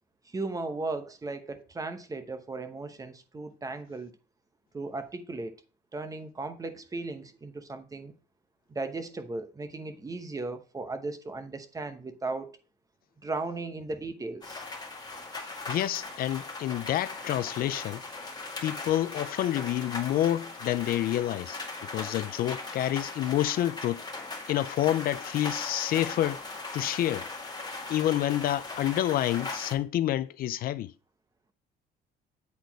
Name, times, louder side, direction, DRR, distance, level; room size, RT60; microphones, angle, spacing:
voice 1, 0.3-4.1 4.7-5.6 5.9-8.1 8.7-12.6 13.2-14.6, right 3 dB, 20° right, 0.9 m, -36 dB
sound 1, 14.4-29.7, left 3 dB, 25° left, 1.8 m, -39 dB
voice 2, 15.7-18.0 18.6-24.0 24.5-26.4 26.7-27.3 27.9-30.9, left 13 dB, 60° left, 0.4 m, -28 dB
8.4 x 4.1 x 4.6 m
cardioid pair, 110°, 17 cm